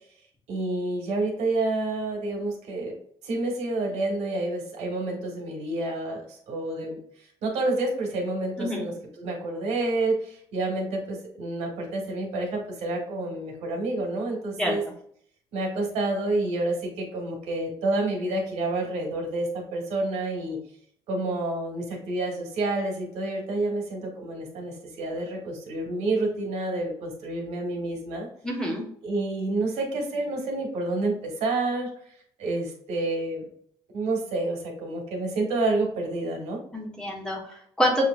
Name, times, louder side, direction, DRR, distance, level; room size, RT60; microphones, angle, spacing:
voice 1, 0.5-3.0 3.2-7.0 7.4-14.8 15.5-20.6 21.1-28.3 29.0-31.9 32.4-33.4 33.9-36.6, right 2 dB, 85° right, 1 dB, 1.7 m, -29 dB
voice 2, 28.4-28.8 36.7-38.1, equal, 5° left, -2 dB, 1.4 m, -27 dB
6.6 x 3.0 x 2.5 m, 0.63 s
cardioid pair, 130°, 11 cm